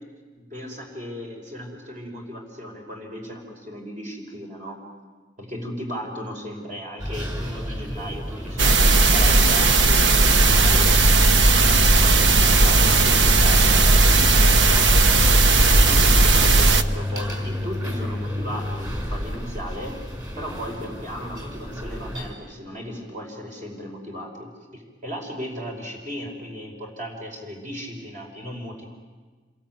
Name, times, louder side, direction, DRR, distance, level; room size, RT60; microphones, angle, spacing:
voice 1, 0.4-4.8 5.4-10.9 11.5-20.0 20.4-28.8, equal, 45° right, 1 dB, 5.4 m, -36 dB
sound 1, 7.0-22.3, left 1 dB, 20° right, 5.7 m, -30 dB
sound 2, 8.6-16.8, right 3 dB, 85° right, 1.2 m, -16 dB
28.0 x 22.5 x 9.4 m, 1.4 s
head